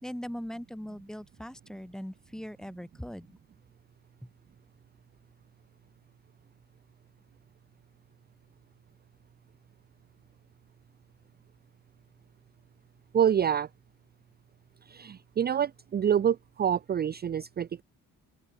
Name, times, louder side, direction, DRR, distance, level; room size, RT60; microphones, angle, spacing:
voice 1, 0.0-3.4 4.2-4.3, equal, ahead, 1.5 m, -40 dB
voice 2, 13.1-13.7 14.9-17.8, right 9 dB, 35° right, 0.5 m, -27 dB
open air
cardioid pair, 90°, 30 cm